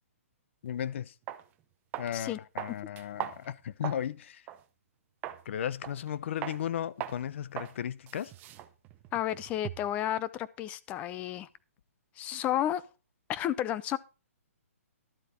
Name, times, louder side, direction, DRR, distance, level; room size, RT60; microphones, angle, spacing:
voice 1, 0.6-1.1 2.0-4.5 5.4-8.3, left 10 dB, 55° left, 0.7 m, -35 dB
sound 1, 0.7-0.8 1.3-1.4 1.9-2.2 2.6-4.1 4.5-4.6 5.2-5.4 5.8-6.1 6.4-6.6 7.0-7.2 7.6-7.8 8.1-10.0, right 12 dB, 20° right, 0.7 m, -40 dB
voice 2, 9.1-11.5 12.2-12.8 13.3-14.0, left 11 dB, 15° left, 0.5 m, -32 dB
12.0 x 8.3 x 4.3 m
hypercardioid pair, 155°, 8 cm